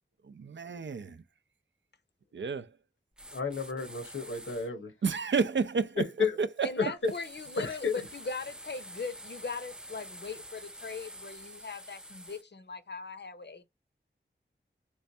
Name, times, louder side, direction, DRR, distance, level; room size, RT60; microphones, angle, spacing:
voice 1, 0.2-1.2 2.3-2.8 5.0-6.7, right 5 dB, 65° right, 0.5 m, -31 dB
sound 1, 3.2-4.7 7.0-12.4, right 1 dB, 5° right, 0.4 m, -47 dB
voice 2, 3.3-4.9 6.2-6.4 6.8-6.9 7.6-7.9, left 5 dB, 85° left, 0.9 m, -32 dB
voice 3, 6.6-13.6, left 4 dB, 60° left, 0.7 m, -40 dB
3.4 x 3.1 x 2.6 m
wide cardioid pair, 55°, 20 cm